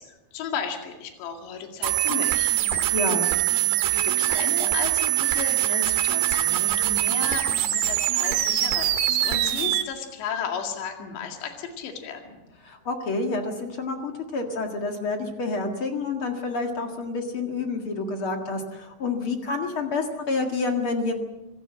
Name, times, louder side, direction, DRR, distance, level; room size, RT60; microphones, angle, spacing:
voice 1, 0.0-2.5 3.9-7.5 7.7-12.4, left 6 dB, 70° left, 4 dB, 4.4 m, -34 dB
sound 1, 1.8-9.8, right 13 dB, 70° right, 3.1 m, -23 dB
voice 2, 2.9-3.3 12.6-21.1, left 3 dB, 50° left, 4 dB, 1.6 m, -28 dB
26.0 x 16.0 x 7.7 m, 1.1 s
omnidirectional pair, 5.2 m